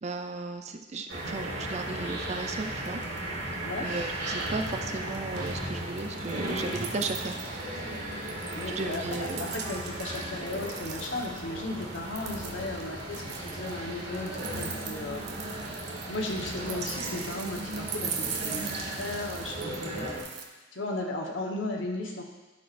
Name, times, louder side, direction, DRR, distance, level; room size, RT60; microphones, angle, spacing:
voice 1, 0.0-3.0 3.8-7.4 8.8-9.6 18.6-18.7 19.8-20.1, right 3 dB, 35° right, 6 dB, 0.5 m, -35 dB
sound 1, 1.1-20.2, right 1 dB, 90° right, 2.2 m, -36 dB
sound 2, 2.5-2.6 2.9-3.4 3.7-4.9 5.1-11.4 11.8-20.4, right 6 dB, 60° right, 0.8 m, -41 dB
voice 2, 8.5-15.2 16.1-20.1 20.7-22.2, left 2 dB, 80° left, 0 dB, 1.2 m, -35 dB
11.5 x 5.8 x 2.6 m, 1.2 s
head